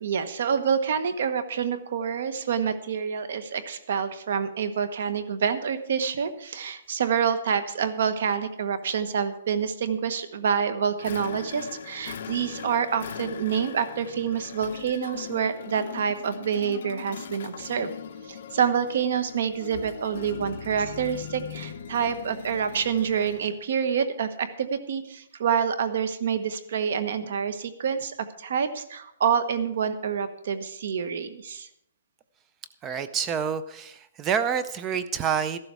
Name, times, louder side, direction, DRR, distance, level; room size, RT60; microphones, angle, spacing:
voice 1, 0.0-17.9 18.3-31.7, right 7 dB, 60° right, 12 dB, 1.2 m, -27 dB
sound 1, 11.0-23.5, left 8 dB, 50° left, 1.1 m, -40 dB
voice 2, 32.8-35.6, right 7 dB, 15° right, 13 dB, 0.5 m, -28 dB
13.5 x 12.0 x 4.7 m, 0.75 s
hypercardioid pair, 170°, 0 cm